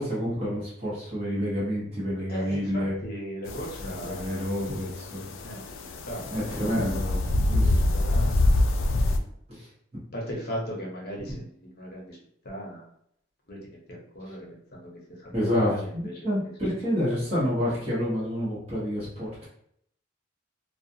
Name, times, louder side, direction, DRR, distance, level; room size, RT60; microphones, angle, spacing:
voice 1, 0.0-3.0 3.8-5.3 6.2-7.2 7.5-7.7 8.1-8.2 9.5-9.7 15.3-19.4, equal, 30° right, -8 dB, 1.0 m, -29 dB
voice 2, 2.3-5.0 5.4-5.6 6.1-6.2 6.6-8.3 9.1-9.2 10.1-12.2 12.4-12.8 13.5-13.6 13.9-14.5 14.7-14.9 15.2-16.1, equal, 50° left, -2 dB, 0.8 m, -38 dB
sound 1, 3.5-9.2, left 1 dB, 80° left, 0.3 m, -26 dB
2.3 x 2.3 x 2.7 m, 0.69 s
head